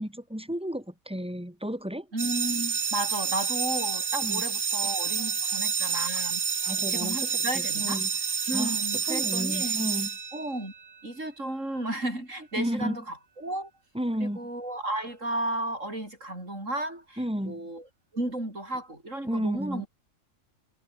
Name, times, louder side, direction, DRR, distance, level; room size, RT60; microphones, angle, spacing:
voice 1, 0.0-2.1 4.2-4.4 5.2-5.6 6.6-7.3 7.5-8.1 8.5-8.8 9.1-10.1 12.6-13.0 13.9-14.5 17.2-17.7 19.2-19.9, equal, 5° right, 5.9 m, -32 dB
voice 2, 2.1-8.0 8.5-9.8 10.3-10.7 11.0-13.7 14.2-17.8 18.1-19.9, right 1 dB, 65° right, 8.4 m, -34 dB
sound 1, 2.2-10.8, right 6 dB, 40° right, 1.2 m, -29 dB
omnidirectional pair, 1.4 m